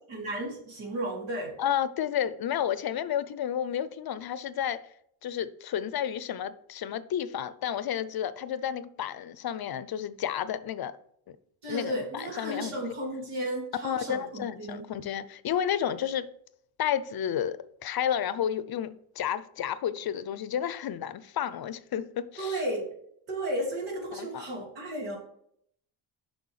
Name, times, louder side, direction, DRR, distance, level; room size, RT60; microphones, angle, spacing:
voice 1, 0.1-1.5 11.6-14.9 22.4-22.9 23.3-25.2, right 1 dB, 85° right, 2.7 m, -34 dB
voice 2, 1.6-4.8 5.2-10.9 11.3-11.4 11.7-12.8 13.8-16.3 16.8-22.6 24.1-24.4, left 9 dB, 50° left, 0.6 m, -31 dB
6.9 x 5.5 x 4.7 m
cardioid pair, 80°, 47 cm